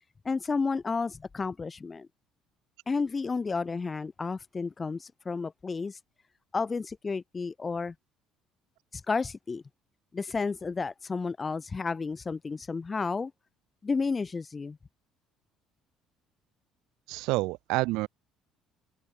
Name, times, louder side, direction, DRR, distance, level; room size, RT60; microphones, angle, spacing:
voice 1, 0.2-2.1 2.9-6.0 6.5-7.9 8.9-9.6 10.1-13.3 13.8-14.8, left 4 dB, 15° left, 1.4 m, -31 dB
voice 2, 17.1-18.1, right 22 dB, 80° right, 5.5 m, -28 dB
open air
cardioid pair, 180°, 0 cm